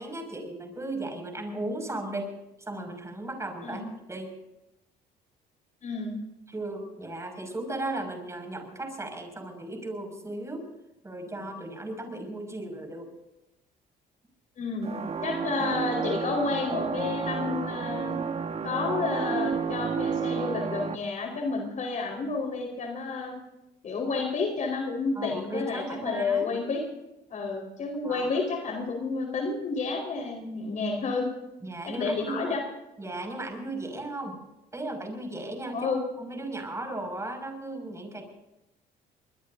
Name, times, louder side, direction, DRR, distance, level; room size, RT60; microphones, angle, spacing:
voice 1, 0.0-2.3 2.6-4.4 6.5-10.7 11.0-13.1 25.1-26.5 28.0-28.3 31.6-32.4 33.0-34.4 34.7-38.2, right 2 dB, 15° right, 4 dB, 6.1 m, -36 dB
voice 2, 5.8-6.2 14.6-18.2 18.6-23.4 23.8-26.8 27.3-31.3 31.9-32.6 35.7-36.0, left 4 dB, 45° left, 2 dB, 4.6 m, -30 dB
sound 1, 14.8-20.9, right 6 dB, 40° right, 1.6 m, -31 dB
24.0 x 20.5 x 2.7 m, 0.95 s
cardioid pair, 110°, 17 cm